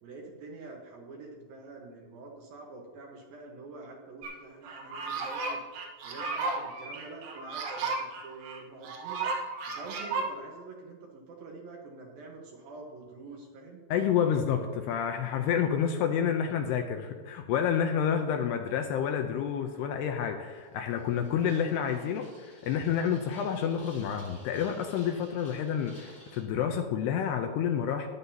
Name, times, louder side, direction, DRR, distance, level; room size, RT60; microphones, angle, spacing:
voice 1, 0.0-5.6 6.0-7.9 8.2-9.3 9.7-13.8, right 3 dB, 65° right, 0 dB, 2.6 m, -46 dB
sound 1, 4.2-4.3 4.6-10.3, right 3 dB, 85° right, 3.8 m, -34 dB
voice 2, 13.9-28.1, left 8 dB, 80° left, 5 dB, 2.5 m, -29 dB
sound 2, 20.4-26.4, equal, 15° left, 1.9 m, -54 dB
14.5 x 10.5 x 2.8 m, 1.5 s
omnidirectional pair, 5.2 m